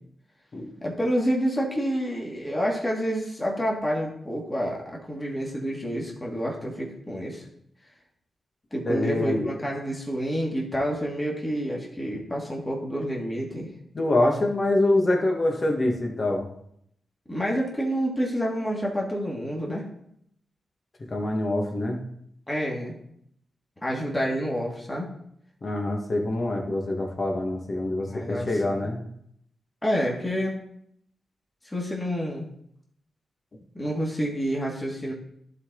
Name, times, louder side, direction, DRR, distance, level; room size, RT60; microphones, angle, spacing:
voice 1, 0.8-7.4 8.7-13.7 17.3-19.8 22.5-22.9 23.8-25.1 28.0-28.9 29.8-30.6 31.6-32.5 33.7-35.1, equal, 20° left, -3 dB, 2.4 m, -28 dB
voice 2, 8.9-9.5 13.9-16.5 21.1-22.0 25.6-29.0, left 1 dB, 45° left, 1 dB, 1.9 m, -25 dB
11.0 x 4.0 x 4.0 m, 0.71 s
supercardioid pair, 45°, 0 cm